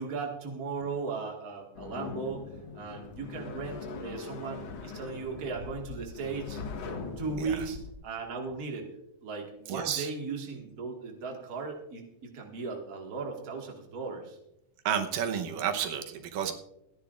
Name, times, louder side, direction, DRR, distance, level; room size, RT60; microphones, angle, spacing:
voice 1, 0.0-2.5 2.7-6.6 7.2-7.8 8.0-8.9 9.2-14.4, right 4 dB, 35° right, 1 dB, 1.8 m, -37 dB
sound 1, 1.8-7.9, left 4 dB, 60° left, 1.9 m, -41 dB
voice 2, 9.7-10.1 14.9-16.5, right 8 dB, 90° right, 5 dB, 2.6 m, -31 dB
27.0 x 10.0 x 2.5 m, 0.82 s
omnidirectional pair, 3.7 m